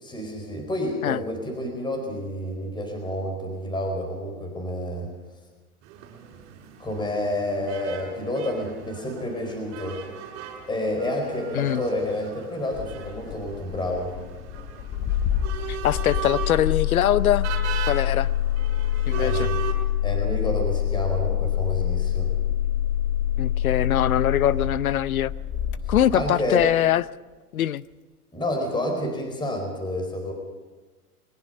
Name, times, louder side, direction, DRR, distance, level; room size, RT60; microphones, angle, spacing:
voice 1, 0.0-5.1 6.8-10.0 10.7-14.1 19.1-19.6 20.0-22.3 25.9-26.7 28.3-30.3, left 1 dB, 10° left, 3 dB, 4.5 m, -29 dB
sound 1, 5.8-19.7, right 9 dB, 35° right, 5.6 m, -38 dB
Engine starting, 12.7-26.8, left 11 dB, 25° left, 1.1 m, -26 dB
voice 2, 15.7-17.5 17.9-18.3 19.1-19.5 23.4-25.3 25.9-27.1 27.5-27.8, left 11 dB, 70° left, 18 dB, 0.8 m, -22 dB
22.0 x 21.5 x 5.5 m, 1.3 s
hypercardioid pair, 120°, 45 cm